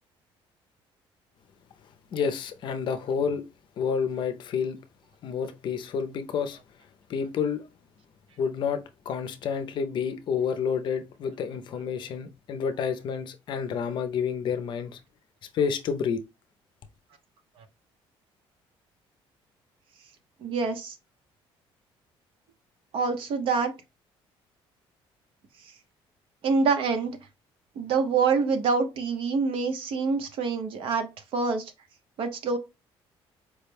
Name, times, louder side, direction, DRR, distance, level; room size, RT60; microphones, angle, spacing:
voice 1, 2.1-3.4 3.8-4.8 5.2-6.6 7.1-7.7 8.4-15.0 15.5-16.2, left 6 dB, 50° left, 0.5 m, -29 dB
voice 2, 20.4-21.0 22.9-23.7 26.4-27.2 27.8-31.7 32.2-32.6, right 4 dB, 60° right, 0.9 m, -26 dB
4.7 x 2.2 x 3.3 m
cardioid pair, 140°, 10 cm